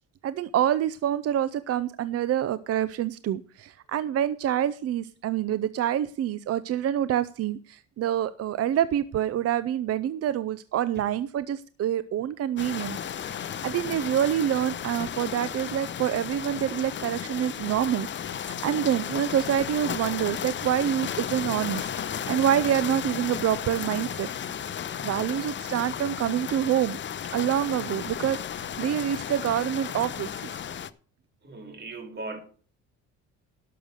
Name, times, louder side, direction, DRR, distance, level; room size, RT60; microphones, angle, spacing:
voice 1, 0.2-13.0 13.3-24.3 25.0-27.0 27.3-30.3, right 10 dB, 55° right, 0.6 m, -27 dB
sound 1, 12.6-30.9, left 8 dB, 40° left, 0.7 m, -34 dB
voice 2, 31.4-32.4, right 3 dB, 35° right, 2.7 m, -38 dB
11.5 x 6.8 x 6.5 m
cardioid pair, 105°, 30 cm